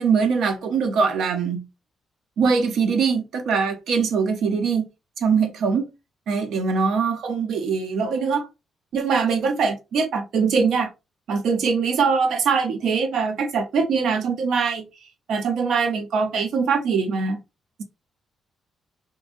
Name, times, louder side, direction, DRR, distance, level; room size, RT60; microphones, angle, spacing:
voice 1, 0.0-1.7 2.4-4.9 5.2-5.9 6.3-8.5 8.9-10.9 11.3-14.9 15.3-17.4, right 5 dB, 80° right, 0.6 m, -22 dB
3.0 x 2.2 x 2.5 m
cardioid pair, 125°, 0 cm